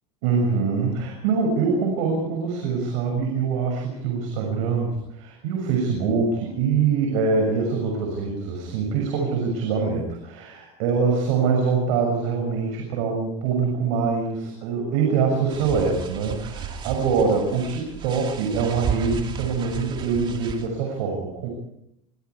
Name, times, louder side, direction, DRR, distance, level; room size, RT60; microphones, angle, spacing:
voice 1, 0.2-21.5, right 5 dB, 70° right, 2 dB, 6.6 m, -24 dB
sound 1, 15.5-20.7, right 6 dB, 30° right, 2.6 m, -33 dB
25.5 x 23.5 x 4.8 m, 0.78 s
supercardioid pair, 135°, 16 cm